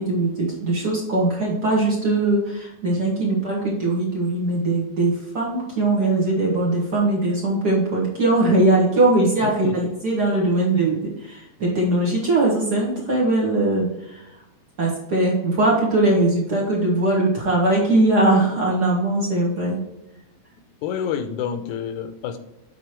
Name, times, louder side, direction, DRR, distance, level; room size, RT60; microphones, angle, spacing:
voice 1, 0.0-14.3 14.8-19.8, right 2 dB, 40° right, -3 dB, 1.9 m, -20 dB
voice 2, 20.8-22.4, left 8 dB, 85° left, 9 dB, 2.1 m, -28 dB
7.9 x 4.2 x 4.5 m, 0.89 s
omnidirectional pair, 3.4 m